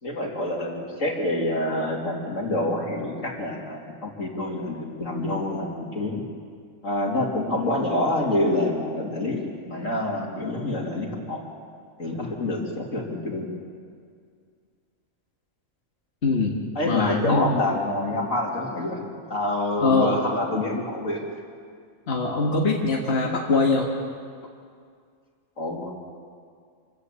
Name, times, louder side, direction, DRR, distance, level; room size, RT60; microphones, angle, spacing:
voice 1, 0.0-6.2 6.8-11.4 12.0-13.5 16.8-19.0 19.3-21.2 25.6-25.9, left 1 dB, 75° left, 0 dB, 3.4 m, -27 dB
voice 2, 16.2-16.6 16.9-17.5 19.8-20.2 22.1-23.9, left 3 dB, 50° left, -1 dB, 1.9 m, -22 dB
27.5 x 14.5 x 8.4 m, 2.2 s
omnidirectional pair, 1.3 m